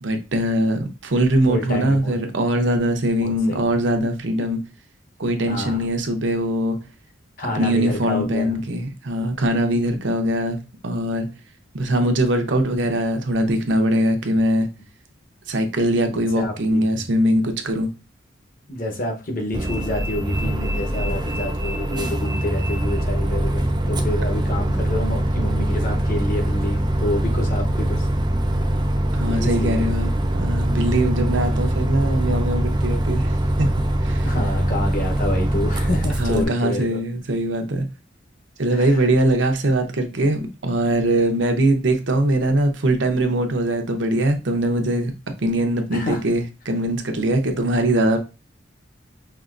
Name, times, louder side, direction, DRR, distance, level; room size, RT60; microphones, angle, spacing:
voice 1, 0.0-4.6 5.2-6.8 7.5-10.6 10.8-11.3 11.7-14.7 15.5-17.9 29.1-33.7 34.0-34.3 36.2-37.9 38.6-45.1 45.4-48.2, right 1 dB, 75° right, 0.8 m, -21 dB
voice 2, 1.5-2.2 3.2-3.6 5.5-5.8 7.4-8.6 16.1-17.0 18.7-28.1 29.2-29.9 34.2-37.0 38.7-39.1 45.9-46.2, left 1 dB, 45° left, 1.0 m, -28 dB
Bus, 19.5-36.4, right 1 dB, 25° right, 0.5 m, -22 dB
5.5 x 2.9 x 2.5 m
head